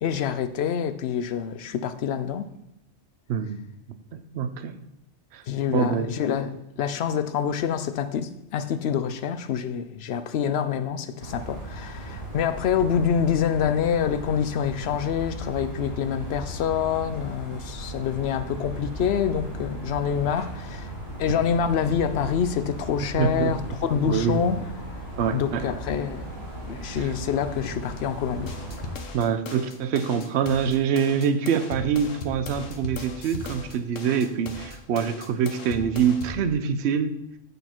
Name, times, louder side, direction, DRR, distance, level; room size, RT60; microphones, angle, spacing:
voice 1, 0.0-2.5 5.5-20.9 21.2-24.6 25.3-26.3 26.7-28.5, left 8 dB, 65° left, 0.8 m, -26 dB
voice 2, 3.3-3.6 4.3-4.7 5.3-5.4 5.7-6.1 21.3-21.4 23.2-23.8 24.1-24.4 25.2-25.7 27.0-27.1 29.1-37.1, right 7 dB, 65° right, 0.9 m, -25 dB
sound 1, 11.2-29.0, right 1 dB, 45° right, 2.8 m, -37 dB
sound 2, 28.5-36.5, left 3 dB, 85° left, 1.3 m, -38 dB
8.2 x 6.5 x 4.4 m
omnidirectional pair, 1.3 m